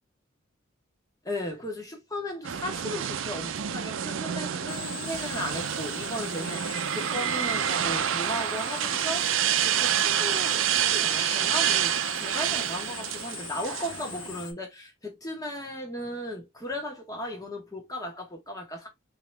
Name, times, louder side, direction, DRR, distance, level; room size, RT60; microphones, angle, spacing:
voice 1, 1.2-18.9, left 1 dB, 15° left, 1.4 m, -36 dB
sound 1, 2.4-14.4, right 9 dB, 75° right, 0.5 m, -28 dB
Drill, 4.7-14.5, left 7 dB, 60° left, 0.9 m, -41 dB
3.6 x 3.0 x 3.3 m
head